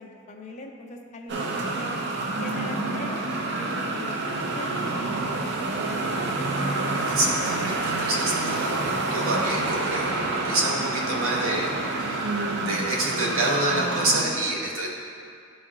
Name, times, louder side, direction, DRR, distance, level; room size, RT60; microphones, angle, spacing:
voice 1, 0.0-1.9 2.4-6.1 13.7-14.4, left 1 dB, 35° left, 1 dB, 0.6 m, -41 dB
sound 1, 1.3-14.2, right 2 dB, 55° right, 0.6 m, -28 dB
voice 2, 7.1-12.4 12.6-14.9, right 2 dB, 80° right, -2 dB, 1.1 m, -27 dB
11.0 x 4.2 x 2.4 m, 2.3 s
head